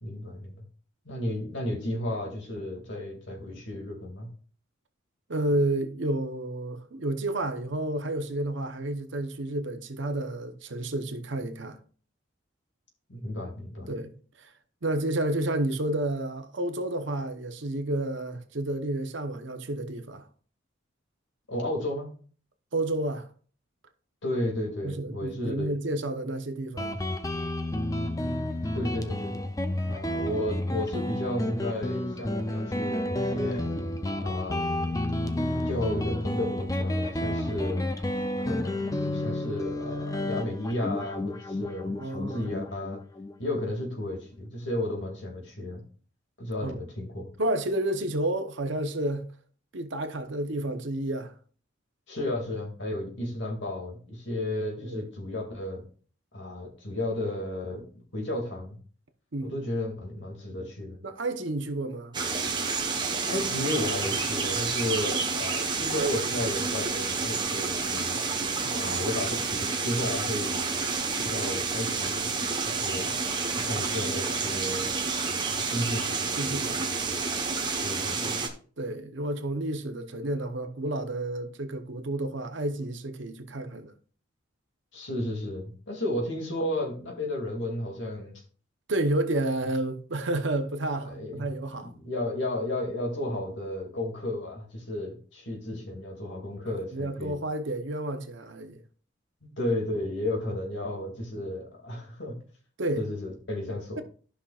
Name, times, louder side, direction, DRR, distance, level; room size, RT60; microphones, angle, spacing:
voice 1, 0.0-0.5 1.0-4.3 13.1-13.9 21.5-22.1 24.2-25.7 28.7-29.5 29.8-33.7 34.2-35.0 35.6-37.9 38.4-43.0 43.4-45.8 46.4-47.2 52.1-55.8 56.3-58.8 59.4-61.0 63.2-68.2 68.8-69.4 69.6-70.6 71.1-72.3 72.6-73.1 73.5-74.9 75.4-76.6 77.8-78.4 84.9-88.4 91.0-91.5 91.7-97.4 99.6-102.4 103.0-104.0, left 1 dB, 65° left, 2.3 m, -33 dB
voice 2, 5.3-11.8 13.9-14.1 14.4-14.5 14.8-20.3 22.7-23.3 24.8-27.0 42.0-42.5 46.6-46.8 47.4-49.3 49.7-51.3 54.8-55.1 59.3-59.5 61.0-62.2 68.6-69.0 76.4-76.9 78.8-83.9 88.9-91.9 96.9-98.8 102.8-103.1, right 1 dB, 65° right, 0.9 m, -30 dB
Guitar, 26.8-44.0, left 1 dB, 15° left, 0.5 m, -31 dB
sound 1, 62.1-78.5, right 4 dB, 20° right, 1.0 m, -29 dB
14.0 x 5.7 x 2.4 m
head